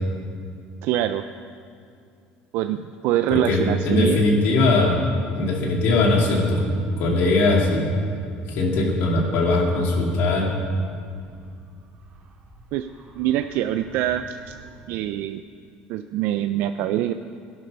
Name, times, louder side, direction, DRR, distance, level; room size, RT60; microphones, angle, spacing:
voice 1, 0.8-1.2 2.5-4.2 12.7-12.9 13.2-14.6 14.9-15.4 15.9-17.1, right 12 dB, 70° right, 9 dB, 0.4 m, -24 dB
voice 2, 3.3-5.0 5.3-6.6 7.0-7.9 8.5-10.5, left 2 dB, 70° left, 0 dB, 2.6 m, -20 dB
sound 1, 5.2-15.0, right 3 dB, 45° right, 2.1 m, -40 dB
13.5 x 11.0 x 5.5 m, 2.4 s
cardioid pair, 120°, 4 cm